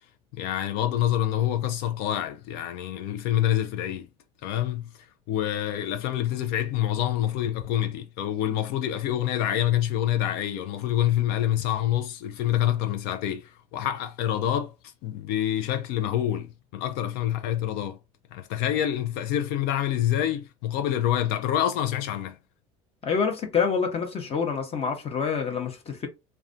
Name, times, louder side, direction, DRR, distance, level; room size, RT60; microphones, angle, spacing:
voice 1, 0.3-4.1 4.4-4.9 5.3-18.0 18.3-22.4, left 12 dB, 65° left, 0.4 m, -27 dB
voice 2, 23.0-26.1, left 6 dB, 35° left, 0.7 m, -27 dB
2.3 x 2.2 x 2.5 m
hypercardioid pair, 85°, 17 cm